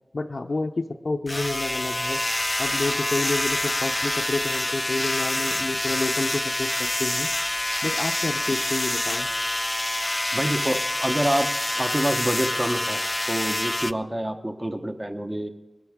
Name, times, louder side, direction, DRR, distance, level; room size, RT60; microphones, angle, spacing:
voice 1, 0.1-2.2 2.6-7.3 7.8-9.3, left 3 dB, 80° left, 0 dB, 0.7 m, -29 dB
sound 1, 1.3-13.9, left 1 dB, 30° left, 0.4 m, -26 dB
voice 2, 10.3-15.5, right 1 dB, 25° right, 6 dB, 1.0 m, -27 dB
20.5 x 12.5 x 3.6 m, 1.2 s
wide cardioid pair, 50°, 0 cm